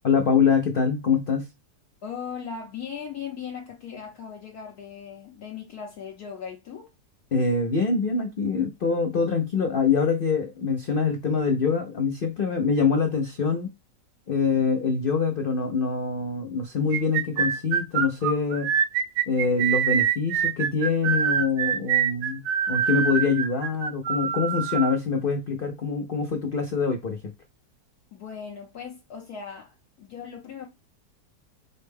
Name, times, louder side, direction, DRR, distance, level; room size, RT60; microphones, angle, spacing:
voice 1, 0.0-1.5 7.3-13.7 14.3-18.7 19.3-27.2, left 5 dB, 85° left, 0.4 m, -24 dB
voice 2, 2.0-6.9 28.1-30.7, left 7 dB, 65° left, 1.2 m, -38 dB
sound 1, 16.9-25.0, right 8 dB, 70° right, 1.2 m, -25 dB
5.3 x 2.2 x 3.3 m
omnidirectional pair, 1.9 m